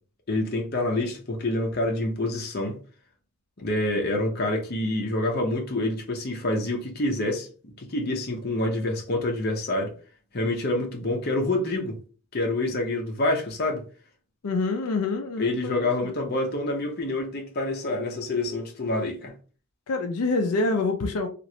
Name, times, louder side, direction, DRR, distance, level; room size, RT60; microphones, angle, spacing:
voice 1, 0.3-2.8 3.6-9.9 10.3-12.0 12.3-13.8 15.4-19.3, left 2 dB, 45° left, 0.7 m, -27 dB
voice 2, 14.4-16.1 19.9-21.3, left 3 dB, 80° left, 0.4 m, -26 dB
3.0 x 2.5 x 2.7 m
head